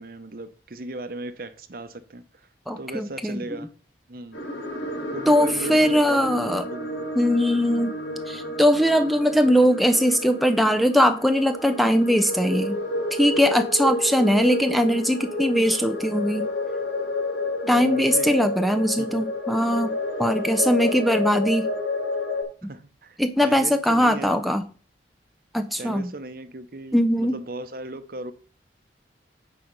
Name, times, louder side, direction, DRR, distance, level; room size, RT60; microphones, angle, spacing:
voice 1, 0.0-2.5 2.8-3.7 4.1-4.5 5.1-7.1 17.6-18.4 19.0-19.3 22.6-24.4 25.8-28.3, right 2 dB, 50° right, 0.7 m, -37 dB
voice 2, 2.7-3.4 5.3-6.6 7.2-8.0 8.3-12.8 13.1-16.5 17.7-19.9 20.2-21.7 22.6-22.7 23.2-24.6 25.5-26.0 26.9-27.4, equal, ahead, 0.4 m, -21 dB
sound 1, 4.3-22.4, left 2 dB, 80° left, 4.1 m, -30 dB
8.7 x 4.9 x 5.3 m
head